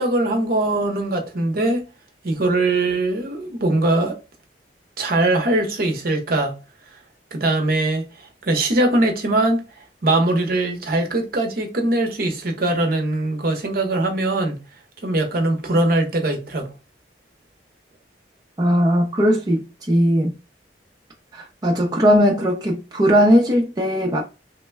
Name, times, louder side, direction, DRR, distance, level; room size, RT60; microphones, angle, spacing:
voice 1, 0.0-1.8 2.2-4.2 5.0-6.6 7.3-9.6 10.0-14.6 15.0-16.7, right 2 dB, 55° right, 0.7 m, -21 dB
voice 2, 18.6-20.3 21.3-24.2, equal, 20° right, 0.5 m, -18 dB
3.0 x 2.1 x 3.3 m
head